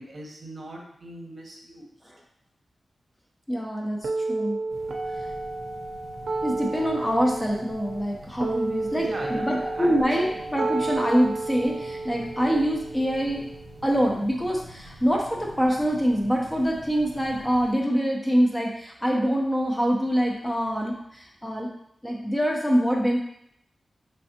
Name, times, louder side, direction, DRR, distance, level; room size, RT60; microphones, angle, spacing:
voice 1, 0.0-1.9 9.0-9.9, right 1 dB, 45° right, -1 dB, 0.9 m, -39 dB
voice 2, 3.5-4.6 5.2-5.3 6.4-13.5 13.8-21.7 22.0-23.2, equal, 10° left, -1 dB, 0.6 m, -25 dB
sound 1, 4.0-14.0, right 3 dB, 70° right, 0.5 m, -32 dB
sound 2, 4.7-17.7, equal, 75° left, 1.1 m, -47 dB
5.4 x 3.3 x 2.8 m, 0.72 s
wide cardioid pair, 135°, 0 cm